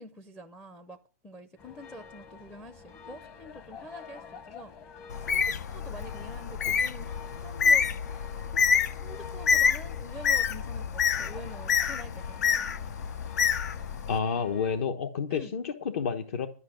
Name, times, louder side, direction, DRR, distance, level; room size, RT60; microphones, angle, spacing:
voice 1, 0.0-4.7 5.3-7.1 7.4-7.9 8.5-8.7 9.0-12.7 15.3-15.6, equal, 5° left, 0.6 m, -46 dB
sound 1, 1.6-14.8, left 5 dB, 25° left, 1.1 m, -48 dB
Bird, 5.1-14.2, left 6 dB, 75° left, 0.9 m, -27 dB
voice 2, 14.1-16.5, left 6 dB, 55° left, 1.1 m, -30 dB
12.5 x 5.5 x 9.2 m
hypercardioid pair, 165°, 9 cm